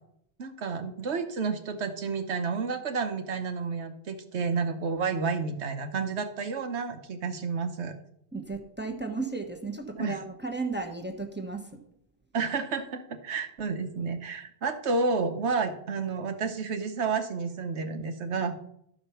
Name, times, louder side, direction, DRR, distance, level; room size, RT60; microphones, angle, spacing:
voice 1, 0.4-7.9 10.0-10.2 12.3-18.5, right 4 dB, 85° right, 7 dB, 1.3 m, -30 dB
voice 2, 8.3-11.8, right 3 dB, 10° right, 2 dB, 1.1 m, -34 dB
13.0 x 5.1 x 5.7 m, 0.74 s
omnidirectional pair, 1.1 m